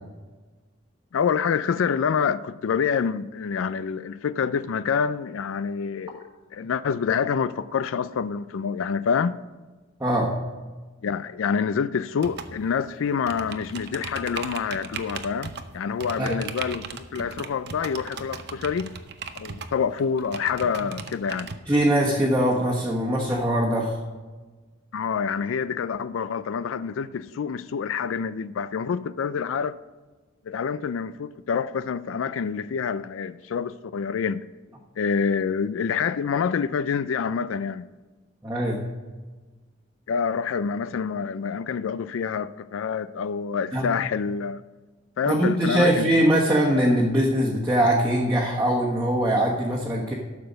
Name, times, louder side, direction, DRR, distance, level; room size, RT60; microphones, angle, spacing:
voice 1, 1.1-6.2 6.5-9.4 11.0-18.9 19.4-21.5 24.9-29.8 30.5-34.5 35.0-37.9 40.1-44.6 45.2-46.2, left 6 dB, 80° left, 0.4 m, -27 dB
voice 2, 10.0-10.3 16.2-16.4 21.7-24.0 38.4-38.8 43.7-43.9 45.3-50.1, right 1 dB, 15° right, 1.3 m, -22 dB
sound 1, 12.2-21.6, right 5 dB, 55° right, 0.7 m, -38 dB
12.0 x 6.9 x 5.2 m
head